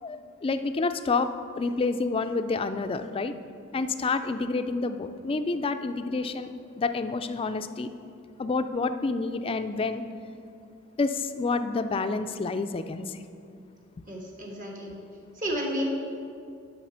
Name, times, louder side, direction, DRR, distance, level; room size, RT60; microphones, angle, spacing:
voice 1, 0.0-3.3 3.7-6.5 6.8-7.9 8.4-10.0 11.0-13.2, left 3 dB, 30° left, 10 dB, 0.3 m, -28 dB
voice 2, 14.1-14.9 15.4-15.8, equal, 45° right, -2 dB, 1.4 m, -32 dB
7.4 x 5.8 x 5.7 m, 2.4 s
head